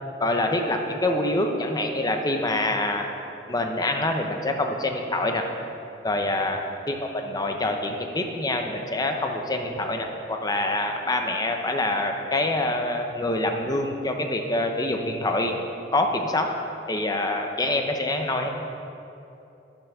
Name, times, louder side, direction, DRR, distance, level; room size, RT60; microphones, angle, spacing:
voice 1, 0.2-3.1 3.5-5.5 6.0-6.6 6.9-15.6 15.9-16.5 16.9-18.5, left 2 dB, 20° left, 4 dB, 0.8 m, -26 dB
11.0 x 5.8 x 6.6 m, 2.8 s
head